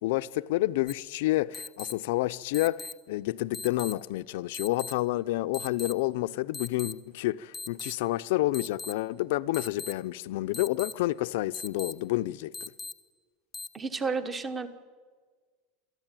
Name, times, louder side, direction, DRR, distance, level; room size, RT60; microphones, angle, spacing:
voice 1, 0.0-12.7, left 17 dB, 60° left, 0.6 m, -29 dB
sound 1, 0.9-1.0 1.5-1.9 2.5-2.9 3.5-3.9 4.5-4.9 5.5-5.9 6.5-6.9 7.5-7.9 8.5-8.9 9.5-9.9 10.5-10.9 11.5-11.9 12.5-12.9 13.5-13.7, left 3 dB, 10° left, 0.8 m, -38 dB
voice 2, 13.7-14.7, right 4 dB, 15° right, 1.1 m, -31 dB
29.0 x 13.5 x 9.0 m
supercardioid pair, 170°, 0 cm